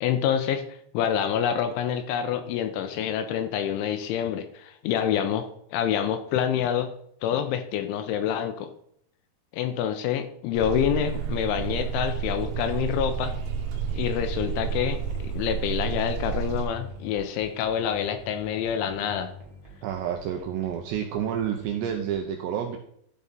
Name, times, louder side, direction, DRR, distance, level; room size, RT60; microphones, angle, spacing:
voice 1, 0.0-6.9 7.2-8.7 9.5-13.3 13.9-19.3, left 9 dB, 85° left, 8 dB, 2.9 m, -27 dB
sound 1, 10.5-16.6, right 7 dB, 65° right, 3.1 m, -30 dB
sound 2, 14.2-22.1, left 2 dB, 40° right, 0.7 m, -46 dB
voice 2, 19.8-22.8, right 9 dB, 80° right, 3 dB, 2.5 m, -29 dB
12.0 x 4.3 x 5.3 m, 0.68 s
omnidirectional pair, 5.8 m